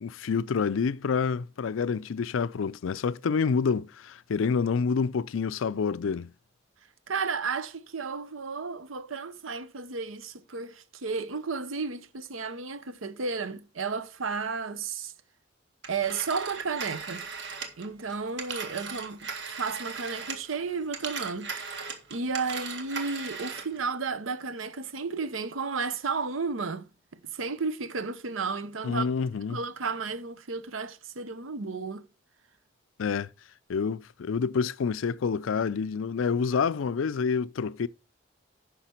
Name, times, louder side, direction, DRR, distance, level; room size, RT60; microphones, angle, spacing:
voice 1, 0.0-6.3 28.8-29.6 33.0-33.3 33.7-37.9, left 5 dB, 85° left, 0.4 m, -28 dB
voice 2, 7.1-15.1 15.9-17.3 17.8-21.7 22.1-26.9 27.2-29.1 29.5-32.1, right 4 dB, 90° right, 0.8 m, -33 dB
Telephone, 15.8-20.6 20.9-23.8, right 5 dB, 60° right, 1.7 m, -38 dB
10.0 x 5.8 x 4.4 m
head